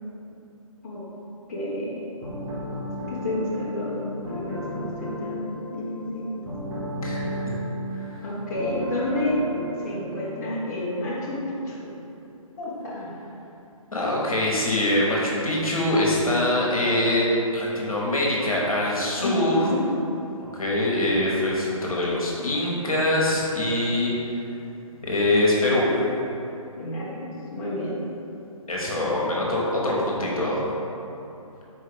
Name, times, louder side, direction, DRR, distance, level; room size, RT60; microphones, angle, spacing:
voice 1, 1.5-2.0 3.1-5.5 5.7-6.4 8.2-9.4 9.8-11.9 12.6-13.1 19.2-19.9 26.8-28.0, left 1 dB, 30° left, -8 dB, 0.8 m, -30 dB
sound 1, 2.2-10.7, equal, 10° right, 0.6 m, -33 dB
voice 2, 7.0-7.6 7.9-8.2 13.9-19.7 20.5-24.1 25.0-25.9 28.7-30.6, left 1 dB, 75° left, -5 dB, 1.0 m, -24 dB
4.3 x 2.7 x 3.7 m, 2.9 s
figure-of-eight pair, 140°, 18 cm